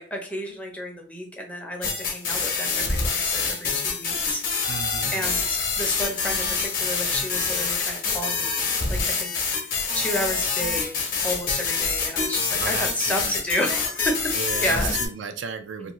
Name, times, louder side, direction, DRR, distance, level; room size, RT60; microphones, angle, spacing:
voice 1, 0.0-4.7 5.1-9.7 9.9-14.3 14.6-15.0 15.8-15.9, left 1 dB, 10° left, 1 dB, 0.5 m, -31 dB
sound 1, 1.8-15.1, left 5 dB, 50° left, 0.8 m, -26 dB
voice 2, 4.7-5.2 12.6-13.4 14.3-15.9, right 5 dB, 80° right, 8 dB, 0.4 m, -34 dB
2.5 x 2.5 x 2.9 m, 0.44 s
head